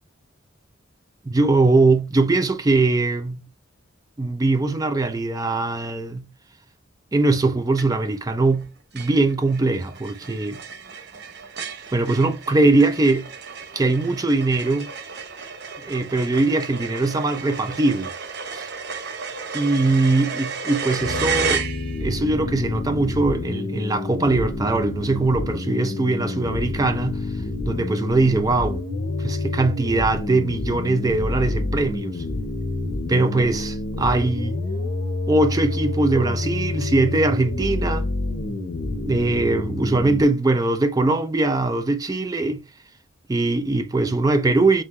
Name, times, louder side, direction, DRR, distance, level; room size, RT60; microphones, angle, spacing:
voice 1, 1.3-3.5 4.2-6.3 7.1-10.6 11.9-13.3 13.7-14.9 15.8-18.1 18.5-18.7 19.5-21.6 22.0-27.3 27.7-28.8 29.2-32.2 33.1-34.6 35.3-38.1 39.0-42.6 43.3-44.8, right 2 dB, 20° right, 0.3 m, -21 dB
sound 1, 7.8-8.2 8.6-8.7 9.0-22.2, right 5 dB, 55° right, 0.7 m, -32 dB
sound 2, 21.0-40.2, left 2 dB, 55° left, 0.7 m, -28 dB
3.7 x 3.7 x 3.0 m
head